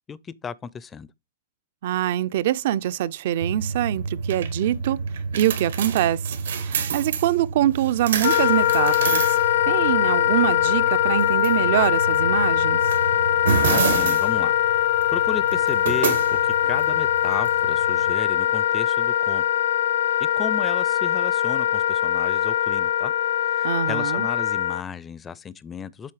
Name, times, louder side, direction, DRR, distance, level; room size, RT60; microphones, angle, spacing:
voice 1, 0.1-1.1 13.6-14.5 15.1-19.4 20.4-23.1 23.4-26.1, left 6 dB, 15° left, 0.4 m, -34 dB
voice 2, 1.8-5.0 5.3-9.4 9.7-12.8 23.6-24.3, right 12 dB, 60° right, 0.4 m, -24 dB
sound 1, 3.4-18.1, right 6 dB, 85° right, 1.3 m, -29 dB
Wind instrument woodwind instrument, 8.2-24.8, left 11 dB, 75° left, 0.6 m, -22 dB
7.6 x 3.5 x 4.8 m
hypercardioid pair, 150°, 0 cm